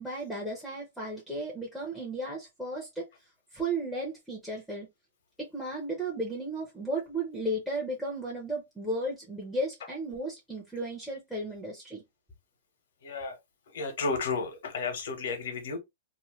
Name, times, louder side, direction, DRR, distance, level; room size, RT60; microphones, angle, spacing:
voice 1, 0.0-3.0 3.5-4.9 5.4-12.0, right 1 dB, ahead, 0.8 m, -34 dB
voice 2, 13.0-13.4 13.7-15.8, left 4 dB, 75° left, 1.2 m, -32 dB
2.9 x 2.1 x 3.0 m
hypercardioid pair, 150°, 0 cm